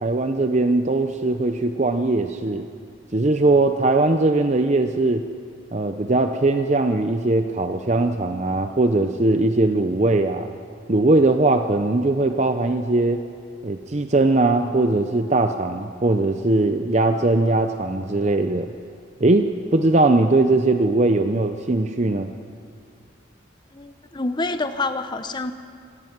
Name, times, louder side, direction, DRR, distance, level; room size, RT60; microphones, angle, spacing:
voice 1, 0.0-2.7 3.1-5.2 5.7-10.5 10.9-13.2 13.6-18.7 19.2-22.3, right 2 dB, 40° right, 7 dB, 0.7 m, -20 dB
voice 2, 23.7-25.5, left 3 dB, 25° left, 10 dB, 0.8 m, -27 dB
26.0 x 17.5 x 6.0 m, 2.3 s
head